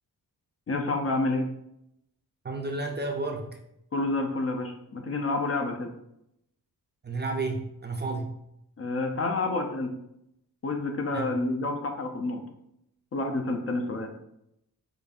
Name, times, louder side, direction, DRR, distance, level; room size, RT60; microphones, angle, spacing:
voice 1, 0.7-1.5 3.9-5.9 8.8-9.9 10.6-12.4 13.1-14.1, left 2 dB, 40° left, 4 dB, 0.4 m, -29 dB
voice 2, 2.4-3.6 7.0-8.4 11.1-11.3, right 3 dB, 30° right, 2 dB, 0.4 m, -32 dB
5.0 x 2.5 x 2.3 m, 0.79 s
wide cardioid pair, 130°, 38 cm